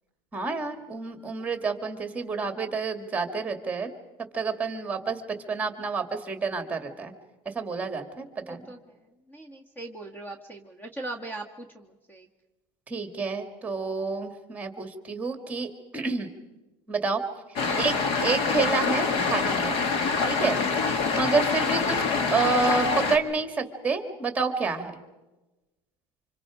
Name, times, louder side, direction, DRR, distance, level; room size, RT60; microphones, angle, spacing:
voice 1, 0.3-3.9 4.3-5.2 5.5-7.1 7.5-8.7 12.9-15.7 15.9-16.3 16.9-17.2 17.7-19.8 20.3-20.6 21.1-22.0 22.3-24.9, right 4 dB, 10° right, 7 dB, 2.2 m, -29 dB
voice 2, 8.4-9.0 9.3-12.3 17.6-17.9 20.9-21.2, right 2 dB, 15° left, 6 dB, 1.7 m, -40 dB
sound 1, 17.6-23.2, left 4 dB, 50° left, 2.2 m, -25 dB
28.5 x 26.5 x 5.0 m, 1.1 s
cardioid pair, 145°, 12 cm